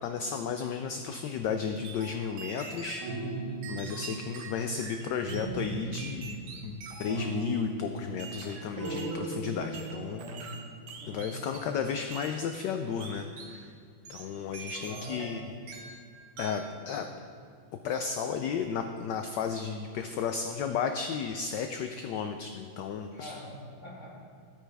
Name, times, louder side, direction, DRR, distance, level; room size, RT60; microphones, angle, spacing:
voice 1, 0.0-3.1 3.7-10.2 11.1-13.7 14.1-15.4 16.4-17.1 17.8-23.3, left 6 dB, 80° left, 6 dB, 1.0 m, -33 dB
sound 1, 1.8-3.1 3.6-5.5 5.9-7.3 8.2-9.3 9.7-11.8 12.1-12.4 13.0-13.6 14.1-15.4 15.7-16.1 16.4-16.7, right 5 dB, 75° right, 1.8 m, -45 dB
sound 2, 3.0-5.0 5.2-6.7 7.1-8.4 8.8-10.1, right 3 dB, 55° right, 3.4 m, -37 dB
voice 2, 10.0-10.5 11.0-11.3 14.6-15.5 16.8-17.0 23.1-24.2, left 1 dB, 35° left, -5 dB, 2.2 m, -44 dB
11.5 x 8.7 x 3.4 m, 2.4 s
omnidirectional pair, 2.3 m